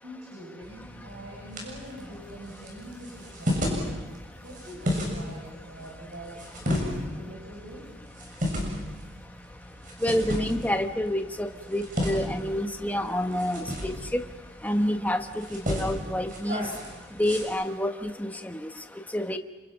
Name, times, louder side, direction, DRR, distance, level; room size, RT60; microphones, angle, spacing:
voice 1, 0.0-4.0 4.4-7.9, equal, 75° right, -3 dB, 7.3 m, -44 dB
sound 1, 0.6-17.4, left 1 dB, 45° right, 7.4 m, -34 dB
voice 2, 10.0-14.2 14.6-16.7 17.2-18.7 19.1-19.4, left 1 dB, 10° left, 6 dB, 1.2 m, -28 dB
29.5 x 27.5 x 6.0 m, 1.2 s
head